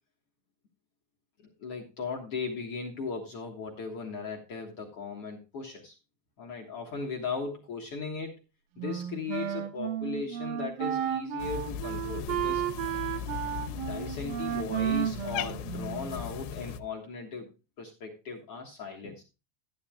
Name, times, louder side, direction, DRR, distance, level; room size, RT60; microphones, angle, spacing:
voice 1, 1.4-5.9 6.4-8.4 8.8-12.7 13.9-17.5 17.8-19.2, left 5 dB, 60° left, -1 dB, 1.6 m, -37 dB
Wind instrument woodwind instrument, 8.8-16.3, right 10 dB, 70° right, 2.4 m, -33 dB
Cat, 11.4-16.8, left 9 dB, 85° left, 2.8 m, -38 dB
13.0 x 11.0 x 2.3 m, 0.28 s
omnidirectional pair, 4.7 m